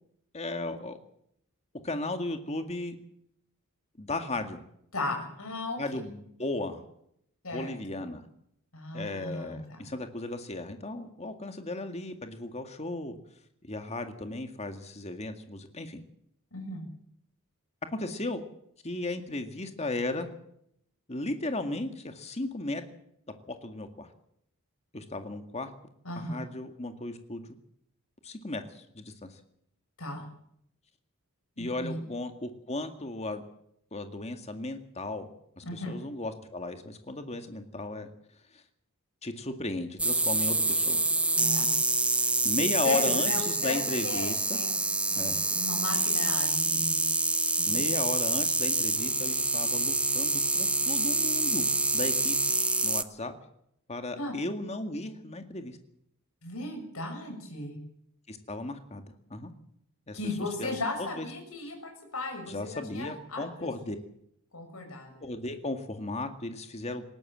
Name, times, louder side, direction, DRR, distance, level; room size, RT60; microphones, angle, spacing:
voice 1, 0.3-1.0 1.8-3.0 4.0-4.6 5.8-6.8 7.5-8.2 8.9-13.2 13.6-16.0 17.9-18.4 18.8-20.3 21.1-22.8 23.5-24.1 24.9-25.7 26.2-27.4 28.2-29.3 31.6-33.4 33.9-35.3 35.6-38.1 38.5-38.6 39.2-41.0 42.4-44.6 45.2-45.4 47.6-51.7 51.9-52.4 52.8-53.3 53.9-55.8 58.3-59.5 60.1-60.2 60.6-61.3 62.5-64.0 65.2-67.0, left 2 dB, 30° left, 7 dB, 2.0 m, -35 dB
voice 2, 4.9-6.0 7.4-7.7 8.7-9.6 16.5-16.9 26.0-26.4 30.0-30.2 31.6-32.0 35.6-36.0 41.4-41.7 42.8-44.8 45.1-47.0 47.6-48.0 54.1-54.4 56.4-57.8 60.1-63.7 64.5-65.3, left 2 dB, 70° left, 3 dB, 6.6 m, -36 dB
sound 1, 40.0-53.0, right 2 dB, 5° right, 0.7 m, -27 dB
20.0 x 17.5 x 7.5 m, 0.73 s
head